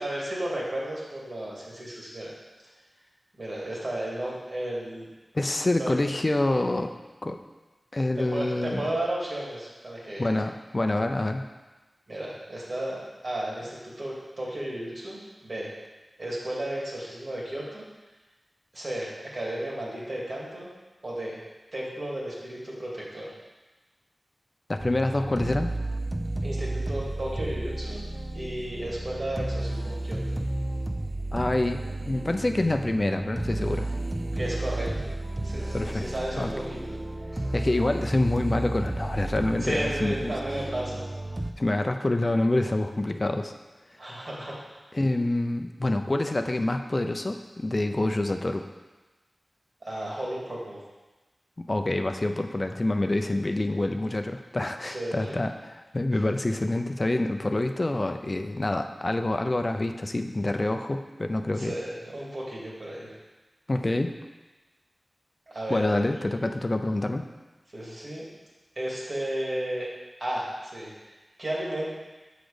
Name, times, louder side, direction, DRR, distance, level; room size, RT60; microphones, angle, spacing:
voice 1, 0.0-2.3 3.4-5.1 5.8-5.9 8.2-10.3 12.1-13.0 13.2-15.7 16.2-17.8 18.7-20.7 21.0-21.4 21.7-23.3 26.4-28.0 28.3-30.4 34.3-35.1 35.4-37.0 37.3-37.4 39.6-41.0 44.0-44.8 49.8-50.8 54.8-55.4 61.6-63.1 65.5-66.1 67.7-68.2 68.8-69.9 70.2-70.9 71.4-71.9, right 1 dB, 60° right, -5 dB, 2.5 m, -33 dB
voice 2, 5.3-6.9 7.2-7.4 7.9-8.9 10.2-11.5 24.7-25.7 31.3-33.9 35.7-36.1 36.4-36.5 37.5-40.3 41.6-43.5 44.9-48.7 51.6-61.8 63.7-64.1 65.7-67.3, left 2 dB, 40° left, 6 dB, 0.5 m, -27 dB
sound 1, 24.8-41.5, right 1 dB, 25° right, 0.5 m, -32 dB
6.1 x 5.1 x 5.0 m, 1.2 s
cardioid pair, 45°, 0 cm